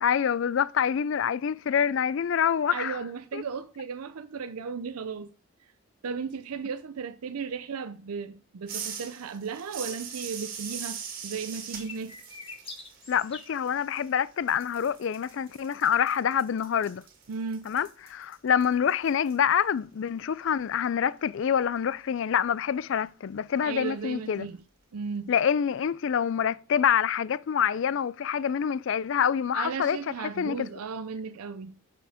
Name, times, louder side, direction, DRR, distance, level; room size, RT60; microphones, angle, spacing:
voice 1, 0.0-3.0 3.3-3.4 13.1-17.0 17.7-24.5 25.3-30.0 30.4-30.7, left 8 dB, 55° left, 0.3 m, -26 dB
voice 2, 2.7-5.3 5.6-5.7 6.0-12.1 17.3-17.7 23.6-24.6 24.9-25.3 29.5-31.8, right 5 dB, 80° right, 0.5 m, -35 dB
sound 1, 8.7-14.2 14.5-19.3, right 7 dB, 40° right, 2.1 m, -41 dB
sound 2, 11.8-13.5, left 4 dB, 25° left, 1.3 m, -44 dB
7.8 x 6.9 x 4.9 m
head